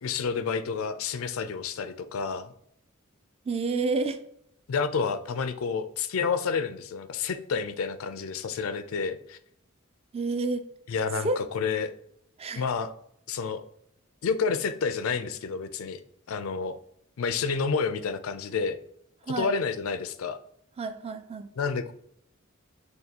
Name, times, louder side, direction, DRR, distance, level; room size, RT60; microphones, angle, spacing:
voice 1, 0.0-2.5 4.7-9.4 10.9-11.9 12.5-12.9 13.3-13.6 14.2-16.0 16.3-16.8 17.2-18.8 19.4-20.4 21.6-21.9, left 5 dB, 90° left, 11 dB, 0.4 m, -29 dB
voice 2, 3.5-4.2 10.1-10.6 11.2-11.4 12.4-12.6 19.3-19.5 20.8-21.5, right 3 dB, 30° right, 9 dB, 0.4 m, -29 dB
6.5 x 2.3 x 2.8 m, 0.71 s
head